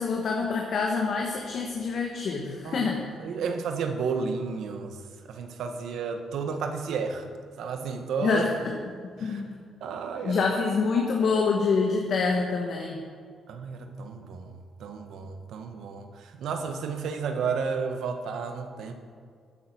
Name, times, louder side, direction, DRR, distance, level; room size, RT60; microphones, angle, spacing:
voice 1, 0.0-3.0 8.2-8.7 9.2-9.6 10.2-13.0, left 4 dB, 60° left, 1 dB, 1.5 m, -26 dB
voice 2, 3.2-5.0 5.3-7.2 7.6-8.4 9.2-9.4 9.8-10.4 10.9-11.0 13.5-14.5 14.8-18.9, right 5 dB, 75° right, 6 dB, 1.4 m, -32 dB
12.0 x 9.7 x 6.1 m, 2.1 s
cardioid pair, 90°, 0 cm